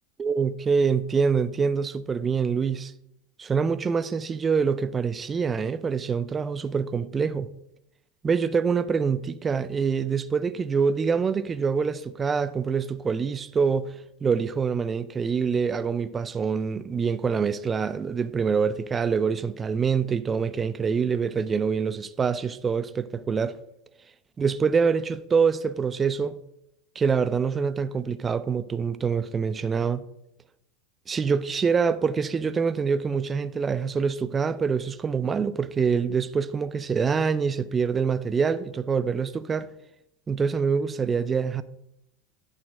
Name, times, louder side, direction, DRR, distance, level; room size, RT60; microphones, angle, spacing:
voice 1, 0.2-2.9 3.4-7.5 8.2-13.9 14.2-23.6 24.4-26.4 27.0-30.0 31.1-39.7 40.3-41.6, right 5 dB, 20° right, 0.3 m, -25 dB
8.9 x 3.2 x 6.0 m
supercardioid pair, 130°, 0 cm